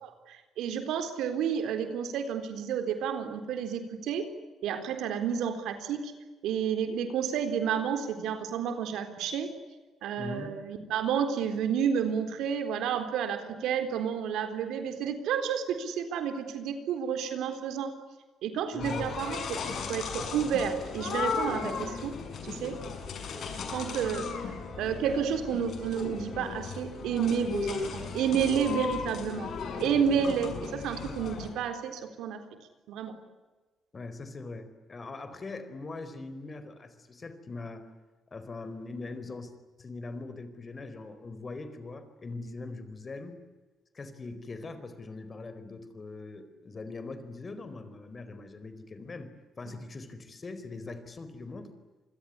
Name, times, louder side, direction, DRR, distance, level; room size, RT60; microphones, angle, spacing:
voice 1, 0.0-4.3 4.6-6.1 6.4-9.5 10.0-17.9 18.4-22.2 22.4-22.8 23.7-24.3 24.8-29.5 29.8-32.4 32.9-33.2 49.7-49.8, right 7 dB, 85° right, 8 dB, 4.0 m, -30 dB
voice 2, 10.2-10.5 18.7-19.1 33.9-37.9 38.3-39.5 39.8-43.3 43.9-51.7, left 3 dB, 35° left, 11 dB, 4.5 m, -41 dB
sound 1, 18.8-31.5, left 5 dB, 65° left, 6.5 m, -36 dB
27.0 x 21.5 x 9.8 m, 1.2 s
cardioid pair, 90°, 0 cm